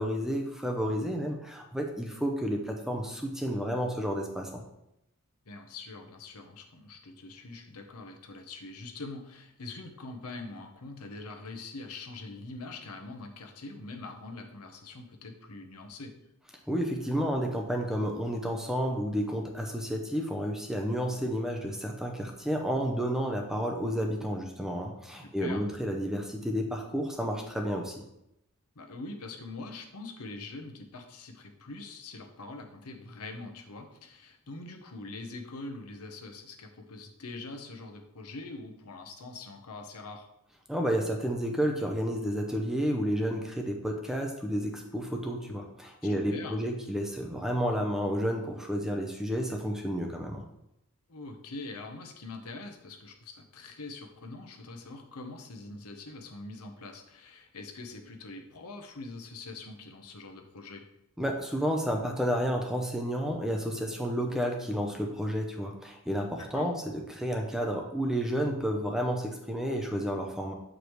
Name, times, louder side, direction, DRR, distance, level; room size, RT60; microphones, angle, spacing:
voice 1, 0.0-4.6 16.7-28.0 40.7-50.4 61.2-66.8 67.1-70.5, equal, ahead, 2 dB, 0.6 m, -31 dB
voice 2, 5.5-16.1 25.2-25.7 28.7-40.3 46.0-46.6 51.1-60.8 66.4-66.7, left 3 dB, 85° left, 3 dB, 0.9 m, -43 dB
8.0 x 5.0 x 3.1 m, 0.83 s
head